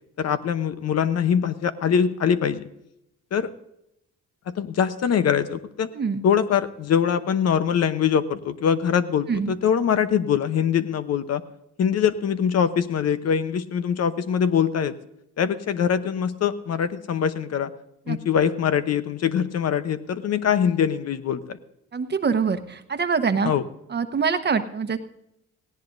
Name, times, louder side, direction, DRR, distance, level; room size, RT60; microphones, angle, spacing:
voice 1, 0.2-2.7 3.3-3.5 4.5-5.9 6.2-11.4 11.8-14.9 15.4-17.7 18.1-21.6 23.4-23.6, left 8 dB, 55° left, 12 dB, 0.9 m, -23 dB
voice 2, 21.9-23.5 23.9-25.0, right 5 dB, 35° right, 9 dB, 1.0 m, -24 dB
18.0 x 17.0 x 2.6 m, 0.83 s
cardioid pair, 90°, 30 cm